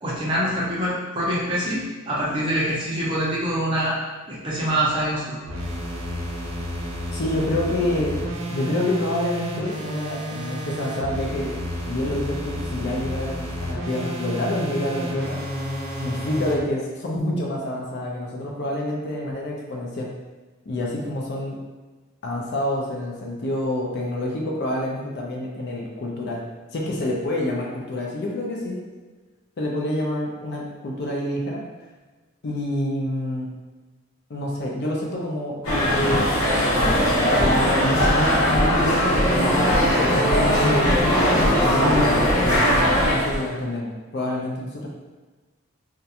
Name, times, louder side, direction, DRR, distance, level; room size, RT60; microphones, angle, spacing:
voice 1, 0.0-4.0 4.3-5.4, right 1 dB, 25° right, -7 dB, 0.6 m, -25 dB
sound 1, 5.5-16.6, equal, 70° right, 0.5 m, -31 dB
voice 2, 7.1-8.2 8.5-11.5 11.8-15.4 16.0-20.1 20.7-21.6 22.2-26.4 26.7-28.9 29.6-31.7 32.4-33.5 34.3-36.3 37.4-41.1 41.6-44.9, left 1 dB, 50° left, -2 dB, 0.4 m, -28 dB
sound 2, 35.6-43.5, equal, 90° left, 0.8 m, -19 dB
2.4 x 2.2 x 2.7 m, 1.3 s
head